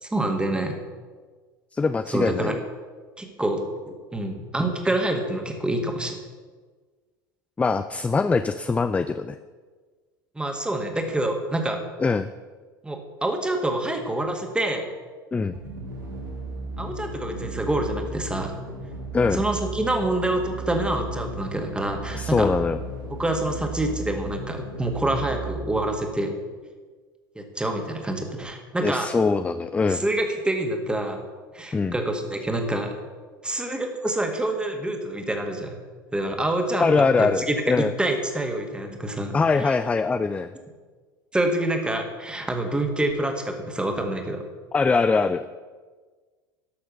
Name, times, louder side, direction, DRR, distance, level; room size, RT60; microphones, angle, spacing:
voice 1, 0.0-0.8 2.1-2.6 3.2-6.2 10.4-11.8 12.8-14.9 16.8-18.5 19.3-22.5 23.2-26.4 27.4-29.1 29.9-31.2 31.5-32.9 33.4-35.7 36.1-39.8 41.3-44.4, right 1 dB, 10° right, 4 dB, 1.8 m, -27 dB
voice 2, 1.7-2.6 7.6-9.4 12.0-12.3 15.3-15.6 19.1-19.4 22.1-22.8 28.8-30.0 31.7-32.0 36.8-37.9 39.3-40.5 44.7-45.5, left 4 dB, 10° left, 11 dB, 0.4 m, -22 dB
sound 1, 15.5-26.2, right 2 dB, 75° right, 2.3 m, -35 dB
12.0 x 6.5 x 6.6 m, 1.4 s
figure-of-eight pair, 70°, 11 cm